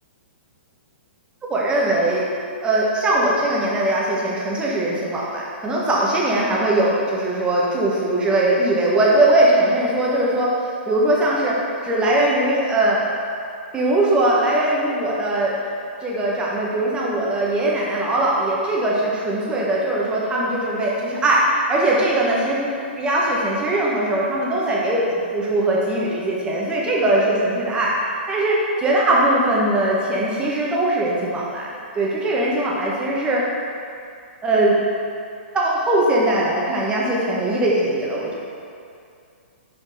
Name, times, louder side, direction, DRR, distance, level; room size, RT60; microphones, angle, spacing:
voice 1, 1.5-2.2 2.6-10.5 10.9-11.6 11.8-13.0 13.7-15.6 16.0-21.4 21.7-22.7 22.9-27.9 28.3-31.7 31.9-33.4 34.4-34.7 35.5-38.4, right 1 dB, 15° right, -4 dB, 1.2 m, -20 dB
5.4 x 5.3 x 4.0 m, 2.4 s
hypercardioid pair, 135°, 6 cm